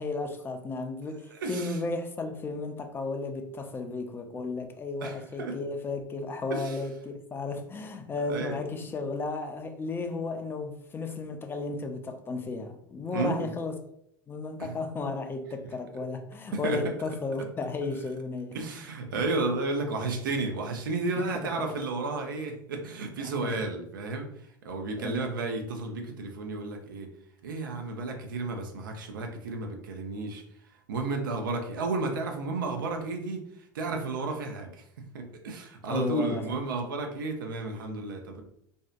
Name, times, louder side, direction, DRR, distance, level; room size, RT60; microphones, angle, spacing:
voice 1, 0.0-13.8 14.3-18.6 19.1-19.3 21.2-21.3 21.6-21.7 23.2-23.6 25.0-25.3 35.9-36.5, left 3 dB, 20° left, 0.4 m, -34 dB
voice 2, 1.3-1.8 5.0-5.6 6.5-6.8 8.3-9.0 13.1-13.5 14.6-14.7 16.6-16.8 18.5-24.3 24.6-27.1 27.4-30.4 30.9-33.4 33.7-34.8 35.1-38.4, right 3 dB, 80° right, 0.5 m, -32 dB
2.6 x 2.1 x 2.4 m
hypercardioid pair, 85°, 11 cm